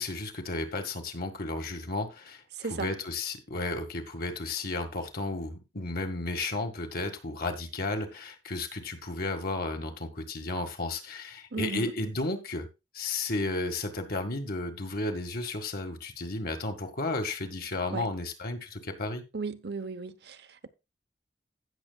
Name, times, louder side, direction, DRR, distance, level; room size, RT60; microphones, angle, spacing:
voice 1, 0.0-2.4 2.7-12.7 12.9-19.2, left 2 dB, 55° left, 1.7 m, -33 dB
voice 2, 2.5-2.9 11.5-11.9 17.9-18.1 19.3-20.7, right 4 dB, 65° right, 0.9 m, -35 dB
16.5 x 6.8 x 2.3 m
head